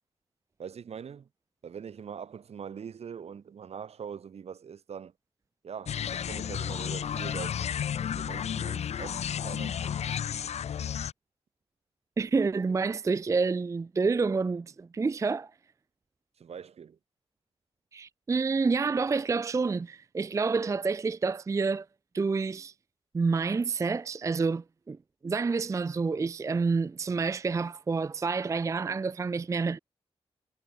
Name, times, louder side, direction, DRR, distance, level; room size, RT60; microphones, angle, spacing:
voice 1, 0.6-1.3 1.6-5.1 5.6-7.6 8.1-9.9 16.4-17.0, right 7 dB, 65° right, 1.0 m, -42 dB
sound 1, 5.9-11.1, left 8 dB, 70° left, 0.7 m, -32 dB
voice 2, 12.2-15.5 17.9-21.9 22.1-22.7 23.1-25.0 25.2-29.8, right 4 dB, 25° right, 0.4 m, -28 dB
cardioid pair, 55°, 12 cm